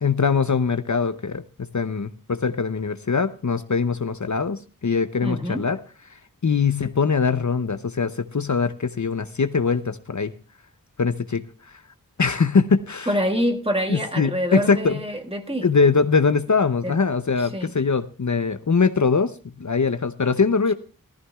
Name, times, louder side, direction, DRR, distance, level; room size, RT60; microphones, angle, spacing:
voice 1, 0.0-5.8 6.4-10.3 11.0-11.4 12.2-13.1 13.9-15.0 15.6-20.7, left 5 dB, 55° left, 10 dB, 0.7 m, -22 dB
voice 2, 5.2-5.7 13.1-15.7 16.8-16.9 17.4-17.7, equal, 15° right, 3 dB, 1.7 m, -26 dB
18.5 x 14.5 x 2.3 m, 0.34 s
wide cardioid pair, 45°, 34 cm